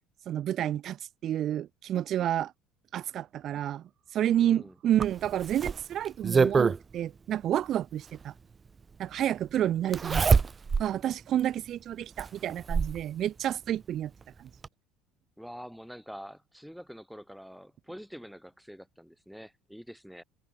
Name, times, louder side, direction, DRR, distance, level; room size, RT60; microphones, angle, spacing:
voice 1, 0.3-2.5 2.9-3.8 4.1-8.3 9.0-10.3 10.8-14.1 14.4-14.5, right 11 dB, 50° right, 0.5 m, -30 dB
voice 2, 4.4-4.8 15.4-20.2, equal, ahead, 5.5 m, -46 dB
Zipper (clothing), 5.0-6.8 8.2-8.3 9.9-10.9 11.4-11.5 12.2-13.0 14.2-14.3 14.6-14.7, right 5 dB, 25° right, 1.3 m, -25 dB
supercardioid pair, 100°, 0 cm